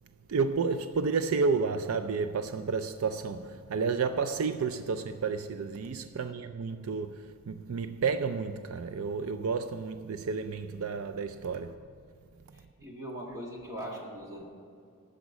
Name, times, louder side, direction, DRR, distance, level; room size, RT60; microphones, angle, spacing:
voice 1, 0.3-11.8, right 5 dB, 85° right, 0.4 m, -31 dB
voice 2, 12.5-14.4, equal, 15° right, 1.6 m, -41 dB
12.5 x 5.1 x 8.3 m
head